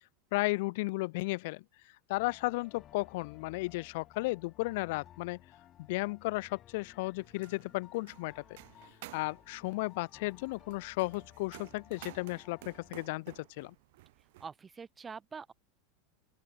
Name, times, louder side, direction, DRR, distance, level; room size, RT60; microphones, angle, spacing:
voice 1, 0.3-1.6 2.1-5.4 5.8-8.6 9.1-13.7, left 23 dB, 65° left, 0.3 m, -34 dB
sound 1, 2.1-12.9, left 11 dB, 35° left, 1.1 m, -58 dB
sound 2, 7.2-14.5, right 20 dB, 70° right, 1.0 m, -54 dB
voice 2, 14.4-15.5, right 5 dB, 20° right, 0.8 m, -45 dB
open air
supercardioid pair, 135°, 0 cm